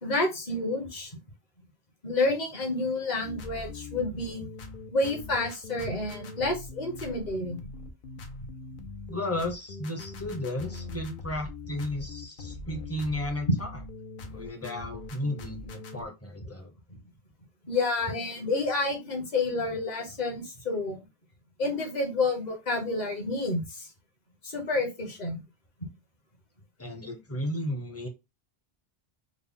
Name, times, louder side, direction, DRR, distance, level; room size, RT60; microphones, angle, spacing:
voice 1, 0.0-1.1 2.0-4.5 4.9-7.6 17.7-21.0 21.6-23.9 24.4-25.4, left 2 dB, 45° left, 3 dB, 1.0 m, -29 dB
sound 1, 3.2-16.0, left 3 dB, 60° left, 0.7 m, -42 dB
voice 2, 9.1-13.7 14.3-16.7 26.8-28.1, left 1 dB, 20° left, 3 dB, 0.6 m, -34 dB
3.7 x 2.0 x 3.5 m, 0.24 s
omnidirectional pair, 1.1 m